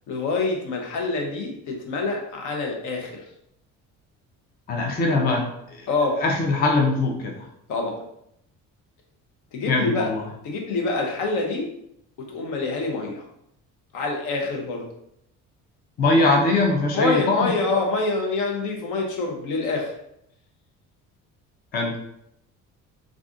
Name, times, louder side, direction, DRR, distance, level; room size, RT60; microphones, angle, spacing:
voice 1, 0.1-3.2 5.9-6.2 7.7-8.0 9.5-10.1 10.4-11.7 12.2-13.2 13.9-14.9 16.9-19.9, left 3 dB, 70° left, 2 dB, 0.8 m, -26 dB
voice 2, 4.7-5.9 6.2-7.4 9.7-10.2 16.0-17.5 21.7-21.9, left 2 dB, 30° left, 1 dB, 0.4 m, -22 dB
2.5 x 2.4 x 3.6 m, 0.77 s
cardioid pair, 145°, 32 cm